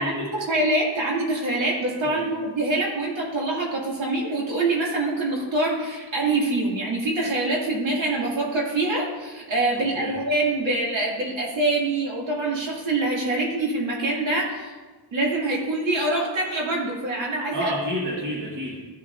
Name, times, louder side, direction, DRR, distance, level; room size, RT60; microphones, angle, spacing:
voice 1, 0.0-14.7 15.1-17.7, right 2 dB, 70° right, -4 dB, 2.6 m, -25 dB
voice 2, 9.8-10.2 17.5-18.8, equal, 40° right, -4 dB, 1.7 m, -30 dB
14.0 x 6.9 x 2.7 m, 1.3 s
wide cardioid pair, 125°, 47 cm